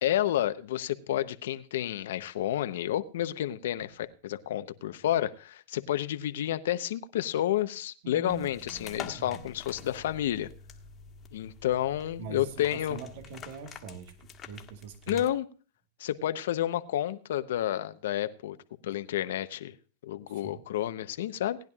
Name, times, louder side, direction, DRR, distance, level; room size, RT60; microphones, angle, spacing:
voice 1, 0.0-10.5 11.3-13.0 15.1-15.4 16.0-18.6 18.8-19.7 20.0-21.6, left 12 dB, 80° left, 0.8 m, -30 dB
voice 2, 8.0-9.5 12.2-15.3 20.3-20.6, right 5 dB, 70° right, 1.5 m, -43 dB
sound 1, 8.3-15.3, left 7 dB, 30° left, 1.5 m, -47 dB
19.0 x 10.5 x 2.4 m
supercardioid pair, 130°, 0 cm